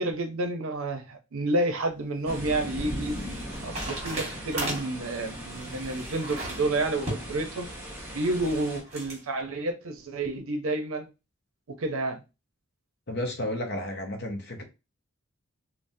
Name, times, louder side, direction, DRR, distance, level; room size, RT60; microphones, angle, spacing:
voice 1, 0.0-3.2 3.6-7.7 8.1-11.1 11.7-12.2, right 2 dB, 70° right, 0.6 m, -30 dB
sound 1, 1.9-9.2, right 1 dB, 30° right, 1.1 m, -39 dB
sound 2, 2.2-8.8, equal, 10° right, 0.7 m, -39 dB
voice 2, 13.1-14.6, left 1 dB, 50° left, 0.6 m, -32 dB
3.4 x 2.0 x 2.6 m
head